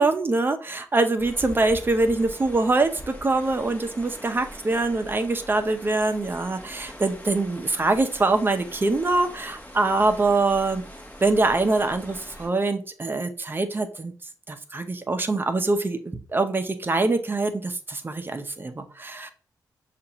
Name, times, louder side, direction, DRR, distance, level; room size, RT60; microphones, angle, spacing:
voice 1, 0.0-10.8 11.2-14.1 14.5-19.3, right 3 dB, 30° right, 8 dB, 0.7 m, -24 dB
sound 1, 1.2-12.5, equal, 25° left, 1.2 m, -43 dB
6.6 x 2.5 x 2.9 m, 0.39 s
cardioid pair, 85°, 7 cm